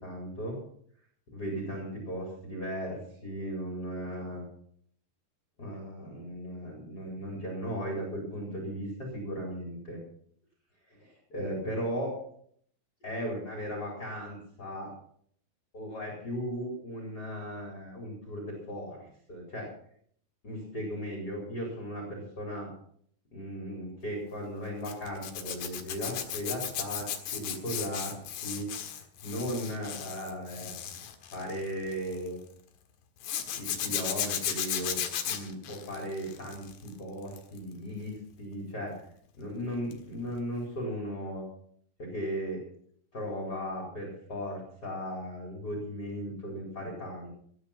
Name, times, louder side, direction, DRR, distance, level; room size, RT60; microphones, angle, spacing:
voice 1, 0.0-0.6 1.3-4.4 5.6-10.0 10.9-12.1 13.0-14.9 15.7-19.7 20.4-22.7 23.3-28.7 29.2-30.7 31.3-32.4 33.5-35.0 35.2-39.0 39.4-41.4 42.0-42.6 43.1-47.3, equal, 25° left, -1 dB, 4.3 m, -37 dB
Zipper (clothing), 24.8-32.3 33.2-36.9 37.2-37.6 39.9-40.1 40.3-40.4, left 9 dB, 80° left, 3.7 m, -35 dB
17.5 x 10.5 x 5.9 m, 0.63 s
omnidirectional pair, 4.9 m